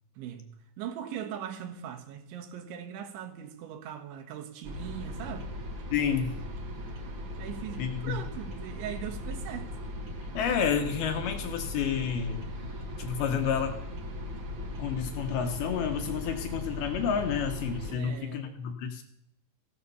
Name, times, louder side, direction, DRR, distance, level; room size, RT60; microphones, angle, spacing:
voice 1, 0.2-0.5 0.8-5.5 7.4-9.7 17.9-18.5, right 9 dB, 90° right, 3.9 m, -40 dB
sound 1, 4.6-17.9, left 1 dB, 55° right, 1.3 m, -38 dB
voice 2, 5.9-6.4 7.8-8.2 10.3-12.5 13.0-13.8 14.8-19.0, left 7 dB, 70° left, 2.8 m, -30 dB
15.5 x 11.0 x 6.9 m
omnidirectional pair, 5.2 m